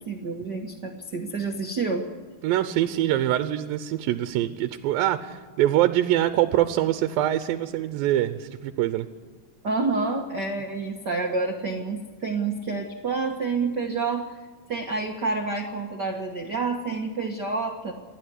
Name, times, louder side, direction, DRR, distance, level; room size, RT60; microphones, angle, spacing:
voice 1, 0.0-2.0 9.6-14.3 14.7-17.9, right 4 dB, 55° right, 2 dB, 1.1 m, -28 dB
voice 2, 2.4-9.1, right 13 dB, 80° right, 10 dB, 2.5 m, -24 dB
28.5 x 11.5 x 9.8 m, 1.5 s
omnidirectional pair, 4.1 m